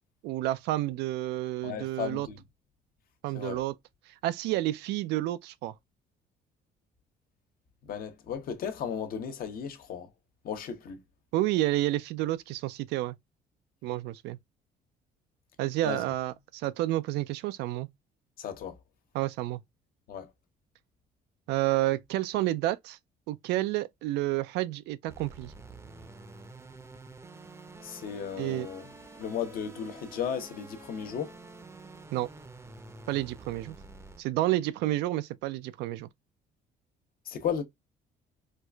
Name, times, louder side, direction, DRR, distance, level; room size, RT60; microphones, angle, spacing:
voice 1, 0.2-2.3 3.2-3.7 4.1-5.8 11.3-13.2 13.8-14.4 15.6-17.9 19.1-19.6 21.5-23.0 23.3-25.5 28.4-28.7 32.1-32.3 33.1-33.8 34.2-36.1, right 16 dB, 85° right, 0.4 m, -30 dB
voice 2, 1.6-2.4 3.3-3.6 7.8-10.1 10.4-11.0 15.8-16.0 18.4-18.8 20.1-20.3 27.8-28.9 29.2-31.3 37.3-37.6, left 7 dB, 60° left, 0.9 m, -35 dB
sound 1, 25.1-34.2, right 3 dB, 15° right, 0.6 m, -48 dB
4.5 x 2.4 x 2.3 m
cardioid pair, 110°, 17 cm